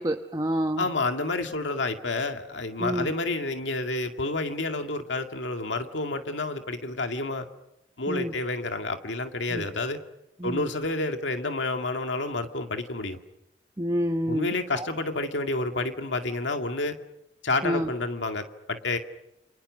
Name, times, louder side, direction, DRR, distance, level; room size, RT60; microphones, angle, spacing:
voice 1, 0.0-0.9 2.8-3.1 8.1-8.3 9.5-9.7 10.4-10.7 13.8-14.9 17.6-17.9, equal, 20° right, 6 dB, 1.0 m, -28 dB
voice 2, 0.8-7.4 8.0-10.0 10.4-13.2 14.3-16.9 17.4-19.0, left 2 dB, 90° left, 6 dB, 2.1 m, -29 dB
29.0 x 26.5 x 6.5 m, 0.89 s
head